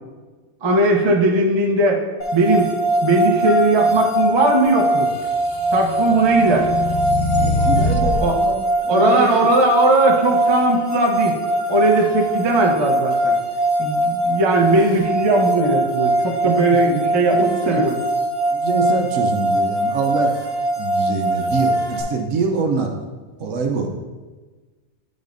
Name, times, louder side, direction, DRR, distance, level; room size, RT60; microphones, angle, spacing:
voice 1, 0.6-2.0 2.3-2.7 3.0-5.1 5.7-6.7 8.0-8.4 8.9-11.4 11.7-13.4 13.8-18.0, right 2 dB, 30° right, 1 dB, 0.5 m, -18 dB
sound 1, 2.2-22.0, right 1 dB, 35° left, 1.1 m, -21 dB
sound 2, 5.3-8.3, left 2 dB, 60° left, 0.4 m, -23 dB
voice 2, 7.4-8.6 8.8-9.5 16.4-17.8 18.5-20.3 20.8-22.9 23.4-23.9, right 4 dB, 65° right, 2 dB, 1.0 m, -25 dB
8.9 x 5.3 x 2.6 m, 1.3 s
omnidirectional pair, 1.5 m